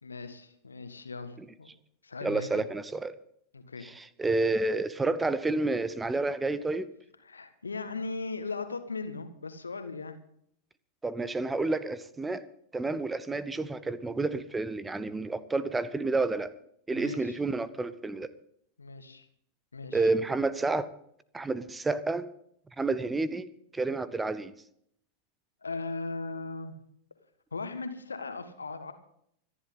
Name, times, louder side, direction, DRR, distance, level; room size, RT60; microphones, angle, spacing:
voice 1, 0.0-1.7 2.0-2.6 3.5-3.9 7.2-10.2 16.9-17.4 18.8-19.3 19.7-20.1 25.6-26.7 27.5-28.9, left 3 dB, 75° left, 9 dB, 1.7 m, -38 dB
voice 2, 2.2-3.1 3.8-6.9 11.0-12.4 12.7-16.5 16.9-18.3 19.9-20.9 21.3-22.3 22.8-23.5 23.7-24.5, right 3 dB, 10° right, 16 dB, 0.8 m, -30 dB
25.5 x 11.0 x 3.8 m, 0.70 s
figure-of-eight pair, 90°, 0 cm